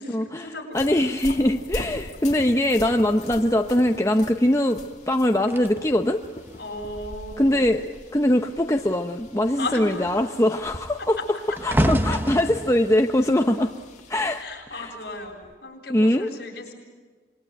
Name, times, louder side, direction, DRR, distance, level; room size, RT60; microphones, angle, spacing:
voice 1, 0.0-0.8 6.6-7.8 9.6-10.3 11.0-11.6 14.3-16.7, left 2 dB, 60° left, 0 dB, 7.7 m, -35 dB
sound 1, 0.7-14.4, left 2 dB, 40° left, 2.6 m, -43 dB
voice 2, 0.7-4.8 5.1-6.2 7.4-7.8 8.1-11.2 11.6-13.7 14.1-14.4 14.7-14.9 15.9-16.3, left 1 dB, 15° left, 4 dB, 0.8 m, -22 dB
sound 2, 5.5-8.2 8.5-8.9 9.2-14.5 15.3-15.5, equal, 10° right, 1.0 m, -30 dB
27.5 x 21.5 x 9.0 m, 1.5 s
head